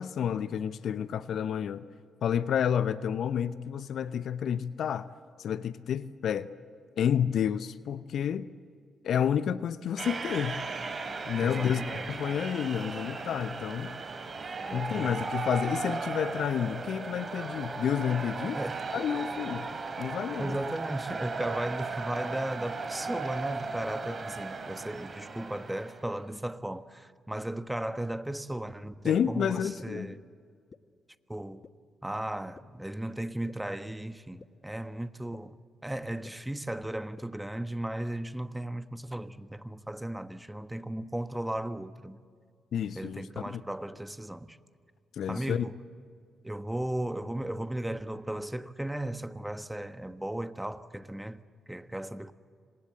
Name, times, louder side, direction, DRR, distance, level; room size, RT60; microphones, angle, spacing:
voice 1, 0.0-1.8 2.2-5.1 5.4-6.5 7.0-8.5 9.0-10.6 11.3-14.0 14.7-18.6 18.9-19.7 20.0-20.6 29.0-30.1 42.7-43.6 45.2-45.7, left 8 dB, 60° left, 0.8 m, -30 dB
sound 1, 10.0-26.2, right 4 dB, 45° right, 3.2 m, -36 dB
voice 2, 11.4-12.2 14.6-15.3 18.5-18.8 20.4-30.2 31.3-31.6 32.0-35.6 35.8-42.2 42.9-44.6 45.3-45.8 46.4-52.3, right 1 dB, 10° right, 1.3 m, -36 dB
sound 2, 28.9-29.0 29.8-29.9 30.7-30.8 31.6-31.7 32.5-32.6 33.5-33.6 34.4-34.5 35.3-35.4 36.2-36.3 37.2-37.3, left 5 dB, 40° left, 1.2 m, -49 dB
28.0 x 26.0 x 7.7 m
hypercardioid pair, 45°, 0 cm